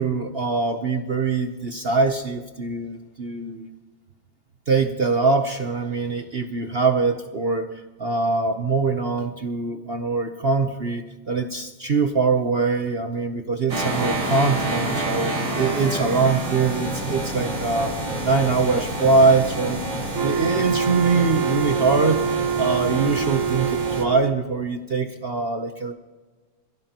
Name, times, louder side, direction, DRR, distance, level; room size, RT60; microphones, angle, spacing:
voice 1, 0.0-3.7 4.7-7.7 8.0-17.9 18.2-19.9 20.2-25.9, right 4 dB, 55° right, 6 dB, 0.7 m, -23 dB
sound 1, 13.7-24.0, right 2 dB, 70° right, 3.9 m, -28 dB
Wind instrument woodwind instrument, 20.1-24.4, right 6 dB, 90° right, 0.7 m, -25 dB
27.5 x 16.0 x 3.0 m, 1.3 s
omnidirectional pair, 2.2 m